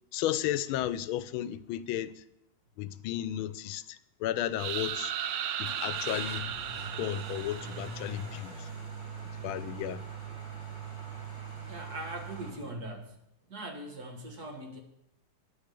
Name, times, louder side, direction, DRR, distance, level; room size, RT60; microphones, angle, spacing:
voice 1, 0.1-2.2 2.8-5.1 5.6-6.5 7.0-8.7 9.4-10.0, left 12 dB, 90° left, 1.4 m, -33 dB
sound 1, 4.6-8.4, right 10 dB, 85° right, 0.8 m, -36 dB
Car / Engine starting, 5.6-12.5, right 5 dB, 35° right, 4.4 m, -42 dB
voice 2, 11.7-13.2 13.5-14.8, right 1 dB, 50° right, 2.0 m, -41 dB
9.8 x 9.7 x 6.8 m
omnidirectional pair, 2.2 m